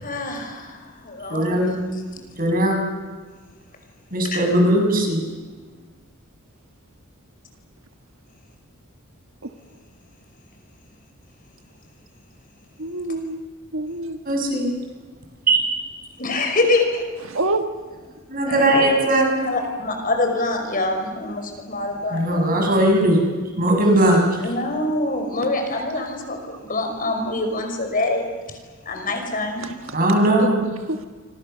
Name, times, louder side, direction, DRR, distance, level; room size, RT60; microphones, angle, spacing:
voice 1, 0.0-1.7 4.3-4.4 16.2-17.1 18.5-18.8 19.4-22.5 24.4-28.2 28.9-29.7, left 2 dB, 40° left, 4 dB, 5.3 m, -25 dB
voice 2, 1.3-1.8 2.4-2.8 4.1-5.2 14.2-14.7 15.5-15.6 18.3-19.3 22.1-23.2 23.6-24.5 29.9-30.7, right 1 dB, 40° right, 2 dB, 6.6 m, -19 dB
voice 3, 12.8-14.2 17.2-17.7 29.6-30.0 30.4-31.1, right 2 dB, 65° right, 6 dB, 1.6 m, -27 dB
28.0 x 25.5 x 6.9 m, 1.4 s
head